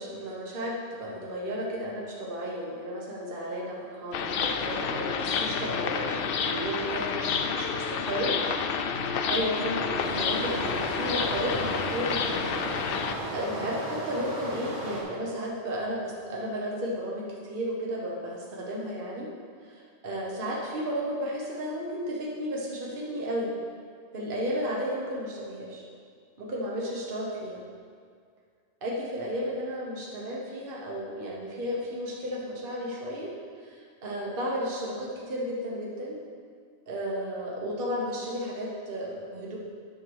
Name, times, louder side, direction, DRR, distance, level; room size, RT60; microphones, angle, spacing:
voice 1, 0.0-8.4 9.3-19.3 19.6-23.5 24.1-25.8 26.4-27.6 28.8-33.3 33.6-36.2 36.9-39.6, equal, 50° right, -3 dB, 1.2 m, -33 dB
sound 1, 4.1-13.1, left 6 dB, 60° left, 0.7 m, -29 dB
Stream, 10.0-15.0, right 1 dB, 75° right, 1.9 m, -36 dB
9.4 x 5.8 x 4.6 m, 2.1 s
omnidirectional pair, 1.2 m